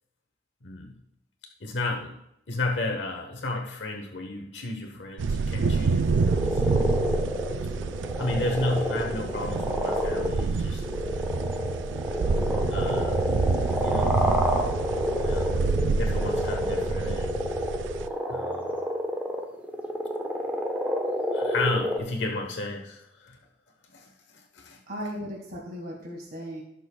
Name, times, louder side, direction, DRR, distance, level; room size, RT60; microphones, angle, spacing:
voice 1, 0.6-0.9 1.6-2.1 2.5-6.8 8.2-10.8 12.7-13.3 13.8-14.2 15.2-17.4 18.3-18.8 21.3-23.4 23.9-24.8, left 2 dB, 70° left, 3 dB, 1.1 m, -33 dB
sound 1, 5.2-18.1, right 4 dB, 85° right, 0.4 m, -28 dB
sound 2, 5.9-22.0, equal, 10° right, 1.0 m, -29 dB
voice 2, 24.9-26.6, equal, 55° right, 0 dB, 1.6 m, -36 dB
16.5 x 6.5 x 2.3 m, 0.81 s
head